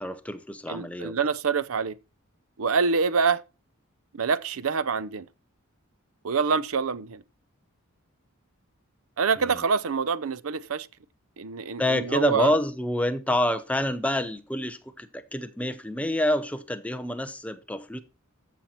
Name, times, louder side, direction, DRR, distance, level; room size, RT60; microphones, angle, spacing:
voice 1, 0.0-1.1 9.4-9.6 11.8-18.0, left 1 dB, 5° left, 0.7 m, -27 dB
voice 2, 0.7-2.0 2.6-3.4 4.1-5.3 6.2-7.2 9.2-10.9 11.4-12.6, right 5 dB, 85° right, 0.6 m, -26 dB
14.0 x 5.8 x 4.4 m
head